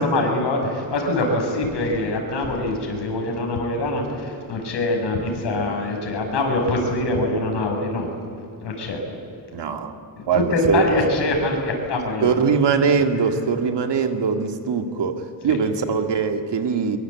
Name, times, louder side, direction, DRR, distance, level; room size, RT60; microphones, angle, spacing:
voice 1, 0.0-8.1 8.6-9.0 10.2-12.4 13.2-13.3 15.5-15.6, left 2 dB, 70° left, 2 dB, 6.3 m, -24 dB
voice 2, 9.5-9.9 10.3-10.9 12.2-17.0, right 5 dB, 70° right, 6 dB, 2.3 m, -22 dB
23.5 x 23.5 x 8.5 m, 2.6 s
wide cardioid pair, 150°, 43 cm